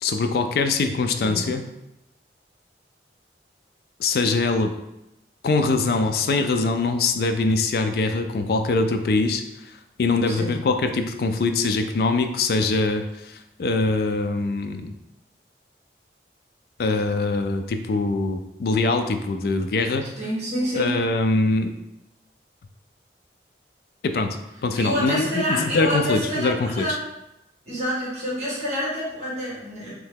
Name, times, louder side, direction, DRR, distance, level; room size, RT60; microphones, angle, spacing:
voice 1, 0.0-1.6 4.0-4.7 5.4-9.4 10.0-14.9 16.8-20.1 20.7-21.7 24.0-24.4 24.6-27.0, left 3 dB, 60° left, 7 dB, 0.3 m, -23 dB
voice 2, 20.2-21.0 24.7-27.0 27.7-29.9, equal, 40° right, -7 dB, 1.2 m, -27 dB
3.2 x 2.8 x 3.5 m, 0.89 s
head